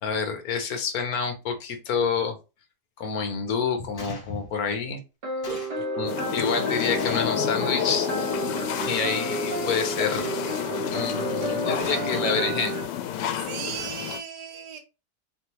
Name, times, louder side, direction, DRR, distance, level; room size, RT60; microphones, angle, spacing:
voice 1, 0.0-2.4 3.0-5.0 6.0-8.4 8.8-10.2 10.9-12.8, left 6 dB, 65° left, 1.3 m, -28 dB
Gunshot gunfire, 4.0-4.3 5.4-5.8 7.0-7.4 8.7-9.2 10.1-10.6 11.8-12.2, left 2 dB, 35° left, 1.3 m, -41 dB
sound 1, 5.2-12.9, right 2 dB, 75° right, 2.2 m, -31 dB
voice 2, 5.4-5.9 6.4-6.5 13.3-14.8, right 6 dB, 55° right, 0.4 m, -36 dB
sound 2, 6.1-14.2, left 10 dB, 90° left, 1.2 m, -30 dB
4.5 x 3.3 x 3.0 m
omnidirectional pair, 1.8 m